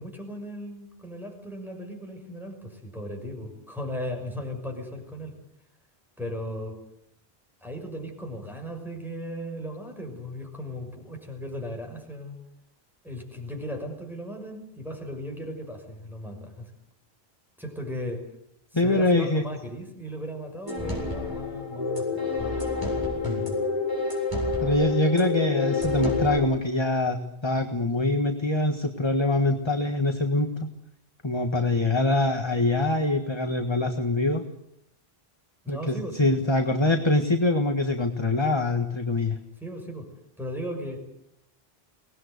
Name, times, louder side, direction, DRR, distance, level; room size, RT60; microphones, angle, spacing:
voice 1, 0.0-5.4 6.2-6.8 7.6-12.4 13.0-16.7 17.6-18.3 18.7-22.6 35.6-36.3 39.6-40.1 40.4-41.0, equal, ahead, 1 dB, 6.2 m, -36 dB
voice 2, 18.7-19.4 24.6-30.7 31.2-34.4 35.7-39.4, left 2 dB, 25° left, 6 dB, 1.5 m, -24 dB
sound 1, 20.7-26.4, left 3 dB, 20° right, 7.8 m, -28 dB
24.0 x 19.5 x 8.2 m, 0.77 s
omnidirectional pair, 1.0 m